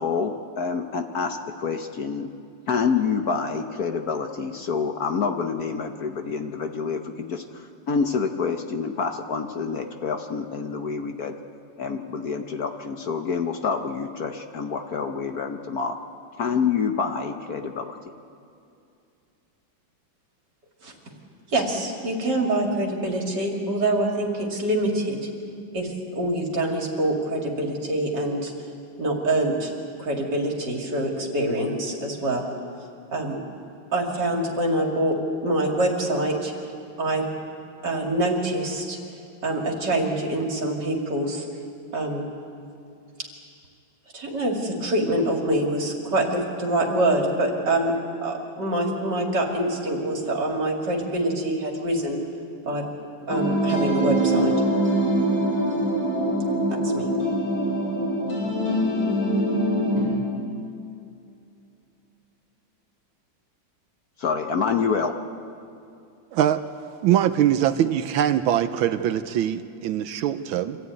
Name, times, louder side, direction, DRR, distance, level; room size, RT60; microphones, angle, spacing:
voice 1, 0.0-2.3 2.7-11.3 11.8-15.9 16.4-18.0 64.2-65.1, left 5 dB, 55° left, 6 dB, 1.3 m, -27 dB
voice 2, 21.5-25.2 25.7-28.5 29.0-29.7 30.0-32.4 33.1-33.4 33.9-35.2 35.4-36.5 37.0-37.2 37.8-39.0 39.4-41.5 41.9-42.3 44.1-47.9 48.2-52.2 52.6-52.8 53.3-54.5 56.7-57.1, right 1 dB, 55° right, 0 dB, 3.4 m, -25 dB
sound 1, 53.3-60.0, right 1 dB, 90° left, 8.3 m, -23 dB
voice 3, 66.3-66.6 67.0-70.8, right 11 dB, 80° right, 11 dB, 1.5 m, -22 dB
25.5 x 15.0 x 9.4 m, 2.6 s
omnidirectional pair, 2.2 m